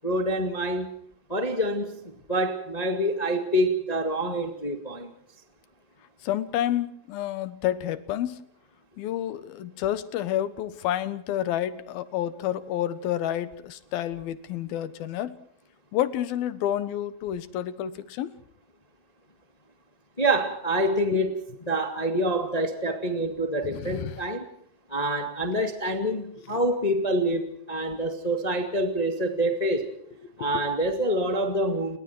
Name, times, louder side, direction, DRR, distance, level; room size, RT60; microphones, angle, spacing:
voice 1, 0.0-0.9 1.3-5.1 20.2-24.5 24.9-29.9 30.4-32.0, right 1 dB, 20° left, 1.1 m, -26 dB
voice 2, 6.2-8.5 9.0-15.4 15.9-18.4 21.1-21.2 23.6-24.2 26.5-26.6 30.2-30.3, left 11 dB, 75° left, 3.0 m, -29 dB
30.0 x 21.5 x 4.6 m
omnidirectional pair, 4.4 m